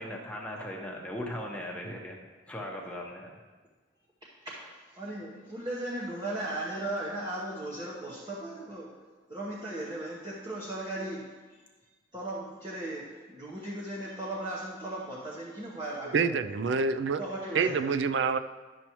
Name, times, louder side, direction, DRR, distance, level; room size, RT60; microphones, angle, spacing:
voice 1, 0.0-3.3 17.6-17.8, left 1 dB, 5° left, -2 dB, 1.0 m, -38 dB
voice 2, 4.4-8.9 9.3-11.6 12.1-16.4 17.2-18.0, right 1 dB, 20° right, -5 dB, 1.0 m, -37 dB
voice 3, 16.1-17.2 17.5-18.4, right 5 dB, 65° right, 11 dB, 0.4 m, -27 dB
12.0 x 6.9 x 3.0 m, 1.3 s
head